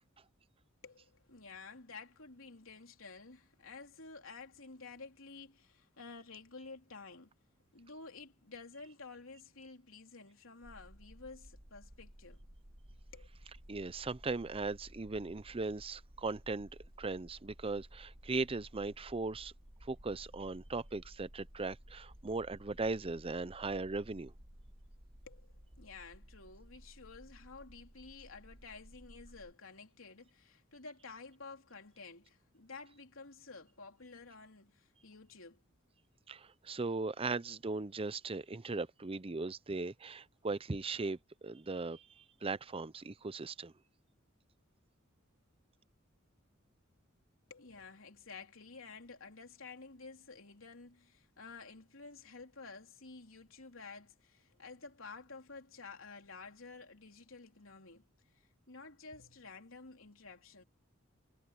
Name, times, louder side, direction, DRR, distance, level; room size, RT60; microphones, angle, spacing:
voice 1, 0.8-7.3 7.7-12.5 13.1-13.3 25.2-35.6 47.5-58.0 58.3-60.6, left 4 dB, 85° left, 3.3 m, -52 dB
sound 1, 10.6-29.5, equal, 45° right, 3.0 m, -56 dB
voice 2, 13.7-16.7 17.0-19.5 19.8-24.3 36.3-43.7, right 3 dB, 30° right, 0.6 m, -38 dB
head